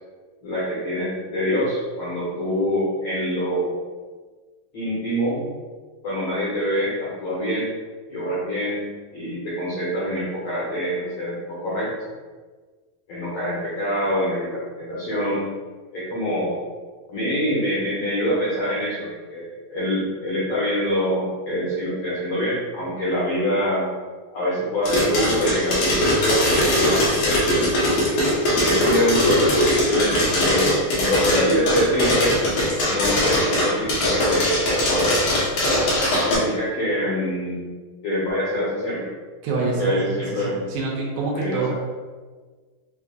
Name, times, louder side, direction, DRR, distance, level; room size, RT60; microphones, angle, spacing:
voice 1, 0.4-3.8 4.7-5.5 6.0-7.7 8.1-8.9 9.1-12.1 13.1-15.5 15.9-16.6 17.1-23.9 24.3-28.2 28.6-30.7 31.0-32.3 32.8-35.0 36.1-39.1 39.6-40.6 41.3-41.7, equal, 80° left, -9 dB, 1.4 m, -25 dB
sound 1, 24.8-36.3, left 1 dB, 65° left, 1.9 m, -20 dB
voice 2, 39.4-39.9 40.3-41.7, right 4 dB, 80° right, -2 dB, 2.2 m, -26 dB
5.8 x 2.8 x 2.4 m, 1.4 s
omnidirectional pair, 4.4 m